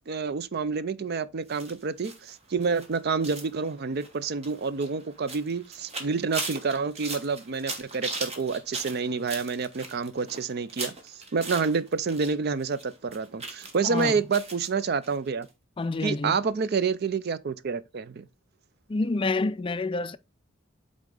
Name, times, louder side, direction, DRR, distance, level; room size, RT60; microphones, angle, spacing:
voice 1, 0.1-15.5 16.0-18.3, right 5 dB, 50° right, 0.4 m, -28 dB
sound 1, 1.5-12.3 12.6-14.7 15.0-15.1 15.4-15.5, right 3 dB, 30° right, 1.3 m, -39 dB
voice 2, 13.8-14.2 15.8-16.4 18.9-20.2, left 3 dB, 25° left, 0.3 m, -28 dB
8.4 x 3.7 x 3.8 m
head